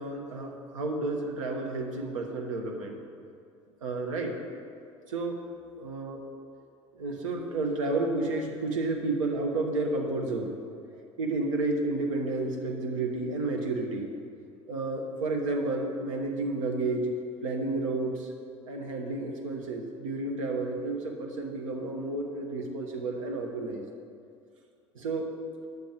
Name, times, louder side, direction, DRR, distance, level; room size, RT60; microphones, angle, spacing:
voice 1, 0.0-3.0 3.8-4.4 5.1-5.4 5.8-6.2 7.0-10.6 11.2-14.1 14.7-17.1 17.4-18.3 18.7-23.9 24.9-25.3, right 2 dB, 75° right, 2 dB, 1.1 m, -31 dB
9.5 x 7.3 x 4.4 m, 2.4 s
figure-of-eight pair, 60°, 17 cm